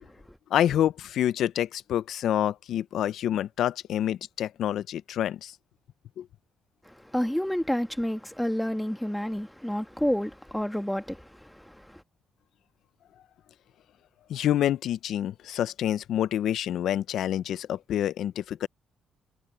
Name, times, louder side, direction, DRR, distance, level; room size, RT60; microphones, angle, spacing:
voice 1, 0.5-5.6 6.2-6.3 14.3-18.7, left 11 dB, 75° left, 0.5 m, -27 dB
voice 2, 6.9-12.0, equal, 5° left, 1.8 m, -30 dB
cardioid pair, 90°, 0 cm